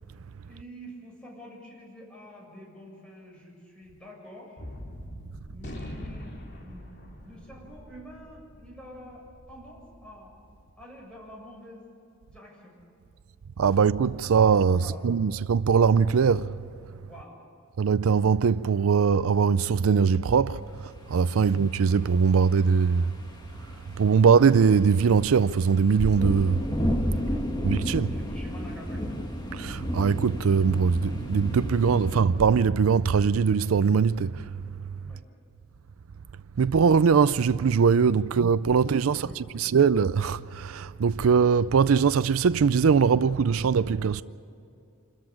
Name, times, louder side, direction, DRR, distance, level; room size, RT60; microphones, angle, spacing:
voice 1, 0.5-4.6 5.5-10.3 10.8-11.8 12.3-12.7 14.7-15.1 17.1-17.4 27.3-27.4 27.9-29.1 35.0-35.2 38.2-38.3 38.7-39.6, equal, 5° left, 7.2 m, -47 dB
Gunshot gunfire, 4.6-11.1, left 1 dB, 55° left, 2.6 m, -43 dB
voice 2, 13.6-16.5 17.8-23.1 24.0-26.6 27.6-28.2 29.5-34.5 36.6-39.3 39.6-44.2, right 6 dB, 80° right, 0.4 m, -21 dB
sound 1, 20.9-32.2, equal, 20° left, 1.9 m, -33 dB
27.5 x 14.0 x 8.6 m
head